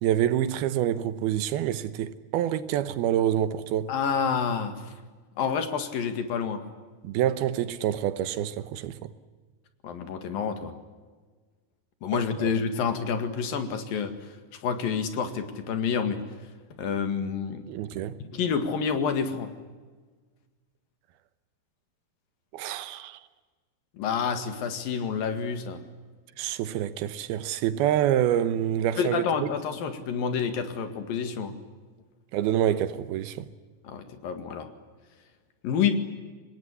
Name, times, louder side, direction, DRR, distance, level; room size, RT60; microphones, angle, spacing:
voice 1, 0.0-3.9 7.0-9.1 12.4-12.5 17.7-18.2 22.5-23.2 26.4-29.5 32.3-33.5, right 11 dB, 80° right, 2.9 m, -27 dB
voice 2, 3.9-4.9 5.4-6.6 9.8-10.7 12.0-14.3 14.6-16.2 16.8-17.6 18.2-19.5 24.0-25.8 29.0-31.5 33.8-34.7 35.6-36.0, left 6 dB, 65° left, 3.6 m, -28 dB
26.0 x 20.5 x 9.9 m
omnidirectional pair, 4.4 m